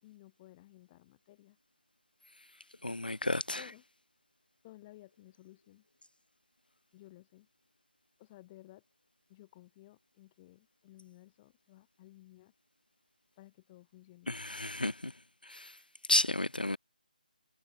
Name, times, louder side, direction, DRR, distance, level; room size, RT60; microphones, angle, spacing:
voice 1, 0.0-1.6 3.6-3.8 4.6-5.8 6.9-7.5 8.2-8.8 9.3-12.5 13.4-14.3, left 17 dB, 15° left, 3.4 m, -56 dB
voice 2, 2.8-3.6 14.3-15.1 15.4-15.7 16.1-16.8, left 2 dB, 80° left, 0.6 m, -32 dB
figure-of-eight pair, 155°, 5 cm